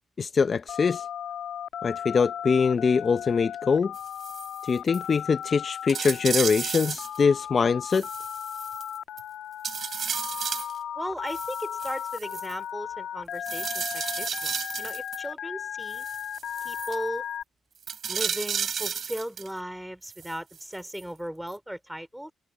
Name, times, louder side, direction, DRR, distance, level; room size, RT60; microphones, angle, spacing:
voice 1, 0.2-1.0 1.8-3.9 4.6-8.1, left 5 dB, 40° left, 0.6 m, -23 dB
Telephone, 0.7-17.4, left 9 dB, 70° left, 2.2 m, -36 dB
sound 1, 3.9-4.6 4.9-5.1 5.4-5.5 5.9-7.2 7.9-9.2 9.6-10.8 11.3-12.5 13.4-15.2 15.9-17.0 17.8-19.5 20.0-21.0 21.5-21.6, right 7 dB, 50° right, 3.6 m, -33 dB
voice 2, 11.0-16.0 16.6-17.2 18.1-22.3, equal, 5° right, 4.0 m, -37 dB
open air
cardioid pair, 90°, 0 cm